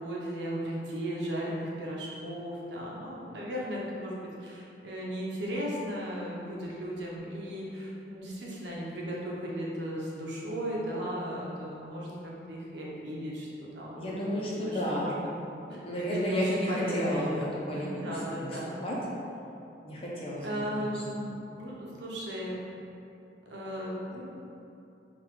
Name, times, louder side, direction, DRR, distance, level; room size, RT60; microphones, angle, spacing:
voice 1, 0.0-14.2 14.6-15.3 15.7-18.8 20.4-22.6 23.5-24.2, equal, 85° right, -4 dB, 0.8 m, -36 dB
voice 2, 14.0-15.1 15.7-18.0 18.3-19.0 19.8-20.5 20.7-21.0, left 1 dB, 30° left, -6 dB, 0.7 m, -33 dB
3.9 x 2.5 x 4.6 m, 2.8 s
head